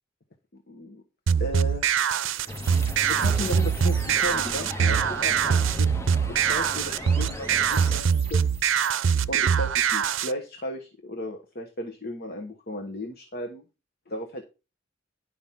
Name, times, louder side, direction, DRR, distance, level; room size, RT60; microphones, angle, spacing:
voice 1, 0.5-1.0 1.4-1.9 2.2-8.4 9.3-13.6 14.1-14.4, left 1 dB, 55° left, 4 dB, 1.2 m, -35 dB
sound 1, 1.3-10.3, right 7 dB, 85° right, 0.5 m, -23 dB
sound 2, 1.6-9.2, right 4 dB, 30° right, 1.8 m, -43 dB
sound 3, 2.5-8.0, left 1 dB, 15° left, 0.6 m, -37 dB
11.0 x 5.1 x 5.8 m, 0.31 s
head